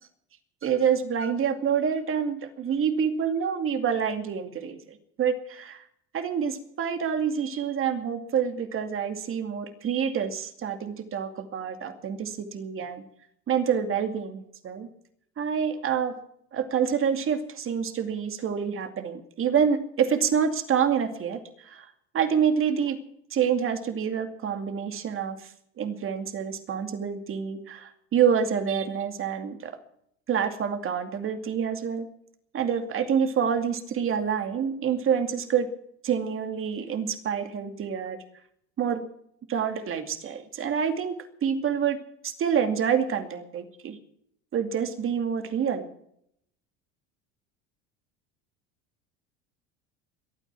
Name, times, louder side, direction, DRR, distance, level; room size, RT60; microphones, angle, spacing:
voice 1, 0.6-5.8 6.1-13.0 13.5-14.9 15.4-16.2 16.5-21.9 22.1-23.0 23.3-25.5 25.8-29.8 30.3-32.1 32.5-35.7 36.0-38.2 38.8-39.1 39.5-44.0 44.5-45.9, right 7 dB, 40° right, 7 dB, 2.4 m, -27 dB
23.0 x 9.2 x 6.1 m, 0.71 s
supercardioid pair, 95°, 33 cm